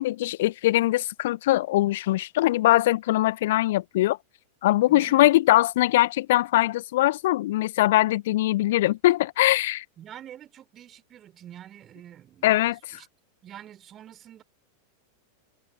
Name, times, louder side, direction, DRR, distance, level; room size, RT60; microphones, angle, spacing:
voice 1, 0.0-4.2 4.6-9.8 12.4-13.0, left 16 dB, 55° left, 1.4 m, -22 dB
voice 2, 4.9-5.3 10.0-12.6 12.9-13.1 13.4-14.4, right 11 dB, 30° right, 5.2 m, -46 dB
figure-of-eight pair, 90°, 0 cm